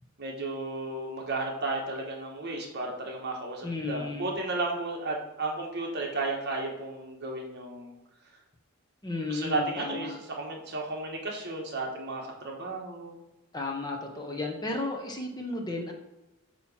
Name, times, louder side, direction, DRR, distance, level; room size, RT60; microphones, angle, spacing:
voice 1, 0.2-7.9 9.3-13.2, right 2 dB, 50° right, 0 dB, 1.4 m, -33 dB
voice 2, 3.6-4.3 9.0-10.2 13.5-15.9, left 2 dB, 20° left, 2 dB, 0.9 m, -33 dB
8.6 x 3.1 x 5.6 m, 0.99 s
head